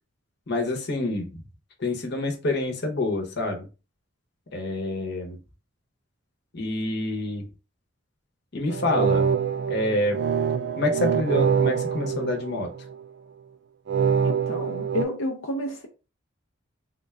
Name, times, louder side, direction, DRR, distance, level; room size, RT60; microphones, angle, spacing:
voice 1, 0.5-1.3 1.8-3.7 4.5-5.4 6.5-7.5 8.5-9.3 9.7-10.2 10.8-12.7, left 2 dB, 55° left, 1.0 m, -27 dB
sound 1, 8.7-13.0 13.9-15.1, right 7 dB, 60° right, 0.3 m, -25 dB
voice 2, 14.2-15.9, left 1 dB, 80° left, 0.6 m, -30 dB
3.6 x 2.4 x 3.3 m
head